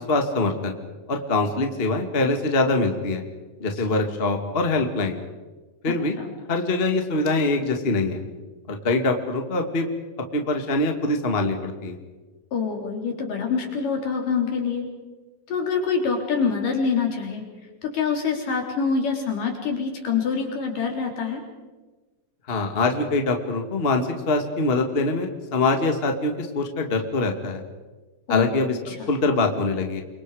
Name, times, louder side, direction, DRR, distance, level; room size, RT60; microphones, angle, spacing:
voice 1, 0.1-0.7 1.1-3.2 3.6-5.2 5.8-6.2 6.5-8.2 8.7-9.9 10.3-12.0 22.5-27.6 28.3-30.0, left 2 dB, 20° left, 4 dB, 1.7 m, -24 dB
voice 2, 3.8-4.1 5.9-6.3 12.5-14.9 15.5-17.4 17.8-21.4 28.3-29.1, left 5 dB, 75° left, 2 dB, 5.1 m, -26 dB
29.0 x 24.5 x 5.0 m, 1.2 s
omnidirectional pair, 3.8 m